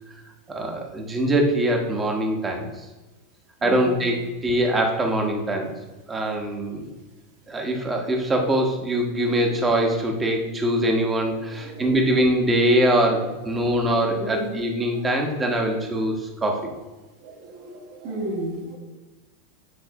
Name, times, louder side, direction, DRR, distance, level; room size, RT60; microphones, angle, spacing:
voice 1, 0.5-2.7 3.6-5.7 6.1-6.9 7.5-16.7, right 1 dB, 20° right, 2 dB, 1.2 m, -23 dB
voice 2, 3.6-4.0 9.3-9.4 11.5-11.9 13.5-13.7 14.1-14.5 15.1-15.2 17.2-18.8, right 1 dB, 55° right, -3 dB, 2.1 m, -33 dB
8.8 x 3.2 x 3.7 m, 1.2 s
hypercardioid pair, 110°, 0 cm